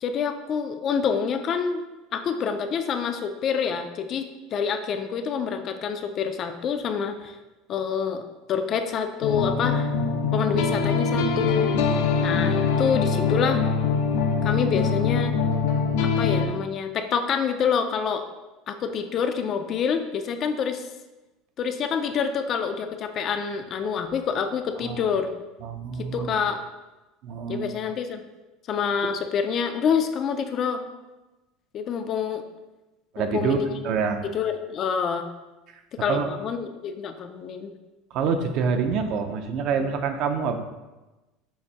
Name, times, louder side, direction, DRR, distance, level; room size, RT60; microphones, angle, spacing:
voice 1, 0.0-1.8 2.1-7.4 7.7-8.2 8.5-9.9 10.3-11.7 12.2-13.6 14.4-15.4 16.0-18.2 18.7-20.9 21.6-25.3 26.1-26.6 27.5-28.2 28.7-30.8 31.7-32.4 33.2-33.8 34.3-35.3 36.0-37.7, left 6 dB, 30° left, 7 dB, 0.4 m, -27 dB
sound 1, 9.2-16.5, left 5 dB, 85° left, 0.6 m, -23 dB
voice 2, 25.6-26.4 27.2-27.7 33.1-34.2 35.7-35.8 36.1-36.3 38.1-40.6, right 5 dB, 40° right, 7 dB, 0.5 m, -26 dB
7.0 x 2.6 x 5.4 m, 1.1 s
cardioid pair, 175°, 0 cm